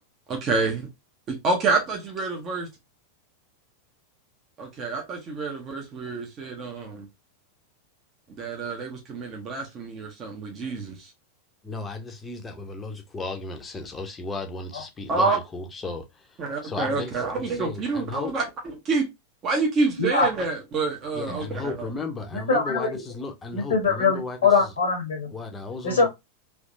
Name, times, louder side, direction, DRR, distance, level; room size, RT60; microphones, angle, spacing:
voice 1, 0.3-0.9 1.3-2.7 4.6-7.1 8.4-11.1 15.1-15.4 16.4-19.1 19.4-21.7, right 3 dB, 30° right, 1.0 m, -27 dB
voice 2, 11.6-18.3 21.1-24.7 25.3-26.1, left 3 dB, 15° left, 0.8 m, -35 dB
voice 3, 22.3-22.9 23.5-25.3 25.8-26.1, left 4 dB, 60° left, 1.1 m, -23 dB
3.5 x 2.9 x 2.7 m
figure-of-eight pair, 90°, 0 cm